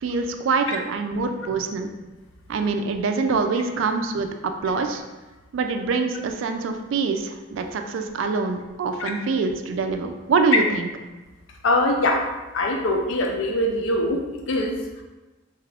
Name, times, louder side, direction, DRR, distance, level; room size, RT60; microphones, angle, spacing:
voice 1, 0.0-1.9 2.5-4.3 4.6-5.0 5.5-10.9, right 4 dB, 75° right, 6 dB, 0.3 m, -24 dB
voice 2, 11.6-12.3 12.5-15.0, left 1 dB, 80° left, 2 dB, 0.5 m, -23 dB
2.8 x 2.4 x 3.3 m, 1.2 s
head